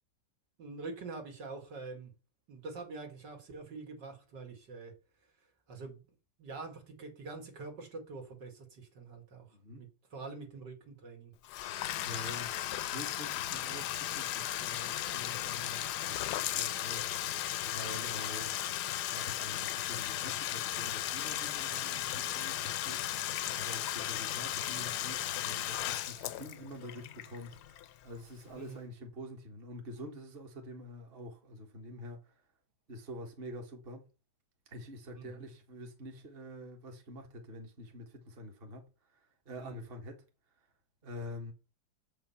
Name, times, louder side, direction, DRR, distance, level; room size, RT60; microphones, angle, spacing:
voice 1, 0.6-2.1 2.5-4.9 5.7-6.1 6.4-9.5 9.8-11.3 28.6-28.8 35.1-35.4 39.6-39.8, right 3 dB, 70° right, 2.8 m, -45 dB
voice 2, 9.5-9.9 12.0-12.5 12.9-17.3 17.7-32.4 32.9-34.1 34.7-40.2 41.0-41.5, equal, 35° right, 1.7 m, -47 dB
Bathtub (filling or washing), 11.4-28.2, left 12 dB, 70° left, 1.1 m, -36 dB
7.6 x 5.8 x 5.6 m
omnidirectional pair, 2.0 m